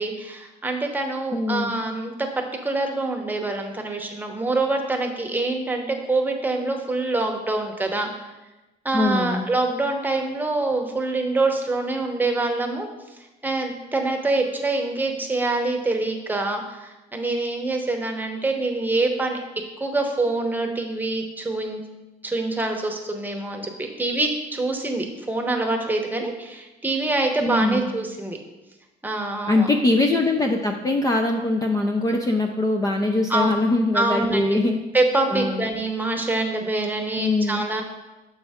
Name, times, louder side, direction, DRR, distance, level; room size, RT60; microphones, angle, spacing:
voice 1, 0.0-2.3 2.6-8.1 8.8-12.9 13.4-19.4 19.8-21.8 22.2-28.4 29.0-29.7 33.3-33.5 33.9-34.6 34.9-37.8, right 2 dB, 10° right, 3 dB, 0.9 m, -25 dB
voice 2, 1.3-1.7 8.9-9.5 27.4-27.9 29.5-34.8 35.3-35.7 37.2-37.6, left 2 dB, 20° left, 3 dB, 0.5 m, -22 dB
6.8 x 5.4 x 3.5 m, 1.1 s
cardioid pair, 110°, 17 cm